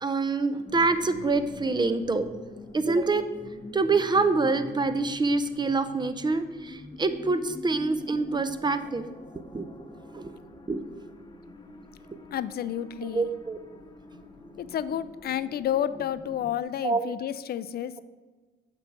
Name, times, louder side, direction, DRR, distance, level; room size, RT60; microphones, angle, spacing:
voice 1, 0.0-2.4 2.7-3.3 3.7-9.0 9.5-9.7 10.1-10.3 10.7-10.8 13.0-13.6 16.8-17.1, right 3 dB, 20° right, 10 dB, 0.6 m, -26 dB
sound 1, 0.7-16.6, left 2 dB, 20° left, 0.8 m, -45 dB
voice 2, 12.3-13.3 14.6-18.0, left 10 dB, 50° left, 15 dB, 0.4 m, -30 dB
8.1 x 3.9 x 6.0 m, 1.3 s
cardioid pair, 90°, 20 cm